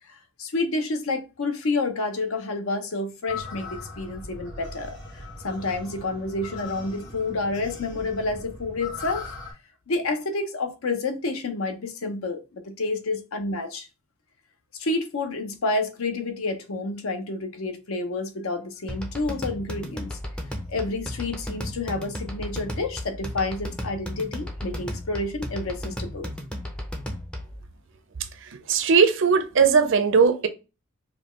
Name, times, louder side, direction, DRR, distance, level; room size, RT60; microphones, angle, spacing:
voice 1, 0.4-9.3 9.9-13.9 14.8-20.2 20.7-26.3, left 3 dB, 65° left, 0.6 m, -29 dB
sound 1, 3.3-9.5, left 3 dB, 50° left, 1.6 m, -39 dB
sound 2, 18.9-27.6, equal, 5° left, 0.5 m, -34 dB
voice 2, 28.4-30.5, right 5 dB, 55° right, 0.5 m, -19 dB
5.1 x 2.2 x 3.0 m
head